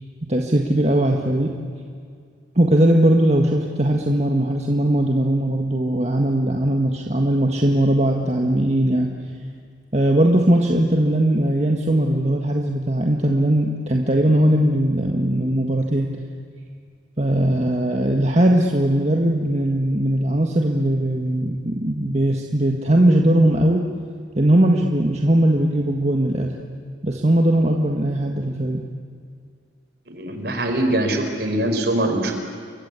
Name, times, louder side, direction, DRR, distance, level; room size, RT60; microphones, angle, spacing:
voice 1, 0.3-1.5 2.5-9.1 9.9-16.1 17.2-23.8 24.3-26.5 27.0-28.8, right 1 dB, 35° right, 1 dB, 1.7 m, -19 dB
voice 2, 30.1-32.3, right 1 dB, 55° right, 5 dB, 4.5 m, -22 dB
29.5 x 24.0 x 8.4 m, 2.2 s
head